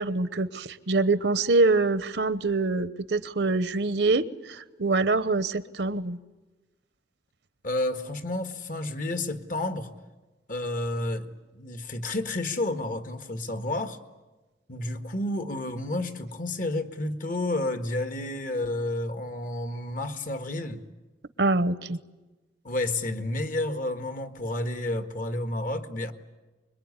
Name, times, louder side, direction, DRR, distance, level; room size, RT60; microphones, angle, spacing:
voice 1, 0.0-6.2 21.4-22.0, right 3 dB, 75° right, 1.0 m, -25 dB
voice 2, 7.6-9.9 10.5-14.0 14.7-20.8 22.6-26.1, left 1 dB, 50° left, 1.6 m, -30 dB
25.0 x 22.0 x 9.7 m
head